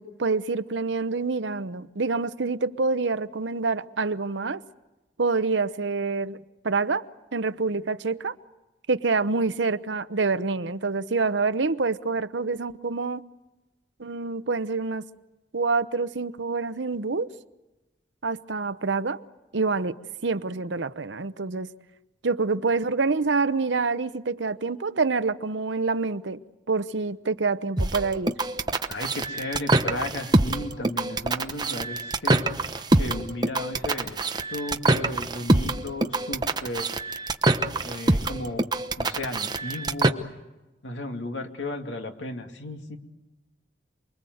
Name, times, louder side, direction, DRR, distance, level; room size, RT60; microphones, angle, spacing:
voice 1, 0.0-4.6 5.2-6.4 6.6-7.1 7.3-8.3 8.9-13.2 14.0-15.1 15.5-17.3 18.2-19.2 19.5-21.7 22.2-26.4 26.7-28.3, right 4 dB, 85° right, 0.9 m, -26 dB
sound 1, 27.8-40.1, right 2 dB, 20° right, 1.0 m, -25 dB
voice 2, 28.9-32.5 32.9-36.9 37.8-38.7 39.0-40.3 40.8-43.0, left 1 dB, 90° left, 2.6 m, -35 dB
28.5 x 22.5 x 7.9 m
head